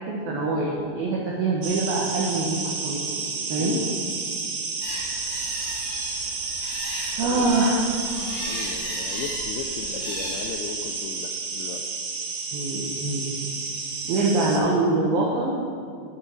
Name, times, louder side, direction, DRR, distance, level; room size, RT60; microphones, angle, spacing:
voice 1, 0.1-3.2 3.5-3.8 7.2-7.8 12.5-13.4 14.1-15.6, right 2 dB, 85° right, -3 dB, 2.1 m, -24 dB
sound 1, 1.6-14.6, right 4 dB, 70° right, 2.1 m, -31 dB
voice 2, 3.6-4.0 7.1-7.8 8.1-11.8, left 7 dB, 90° left, 4 dB, 2.6 m, -37 dB
sound 2, 4.8-10.5, left 1 dB, 75° left, 4.6 m, -37 dB
13.5 x 7.2 x 4.2 m, 2.3 s
omnidirectional pair, 5.8 m